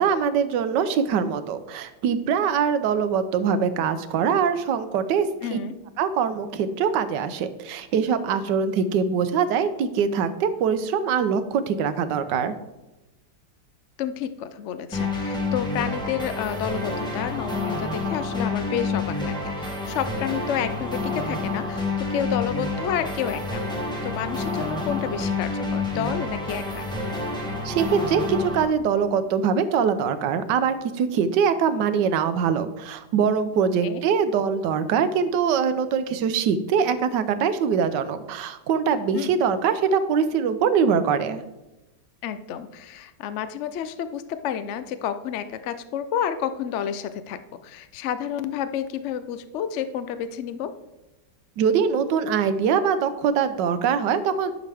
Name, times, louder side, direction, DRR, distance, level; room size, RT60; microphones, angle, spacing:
voice 1, 0.0-5.6 6.0-12.5 27.6-41.4 51.6-54.5, right 6 dB, 75° right, 11 dB, 1.3 m, -23 dB
voice 2, 5.4-5.7 14.0-23.6 24.0-26.8 33.8-34.0 39.1-39.4 42.2-50.7, left 9 dB, 75° left, 11 dB, 0.6 m, -30 dB
sound 1, 14.9-28.6, left 2 dB, 5° left, 1.0 m, -28 dB
10.5 x 6.2 x 3.4 m, 1.0 s
omnidirectional pair, 1.9 m